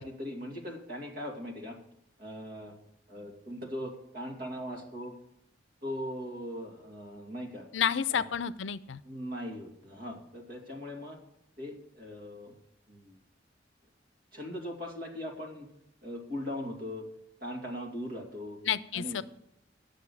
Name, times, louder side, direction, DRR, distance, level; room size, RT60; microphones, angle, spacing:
voice 1, 0.0-1.8 2.2-2.8 3.1-5.1 5.8-7.7 8.1-8.2 9.0-11.2 11.6-12.6 12.9-13.2 14.3-15.7 16.0-17.1 17.4-18.6 18.9-19.2, equal, 55° right, 1 dB, 2.4 m, -39 dB
voice 2, 7.7-9.0 18.7-19.2, left 8 dB, 80° left, 15 dB, 0.5 m, -30 dB
10.0 x 6.5 x 7.1 m, 0.75 s
head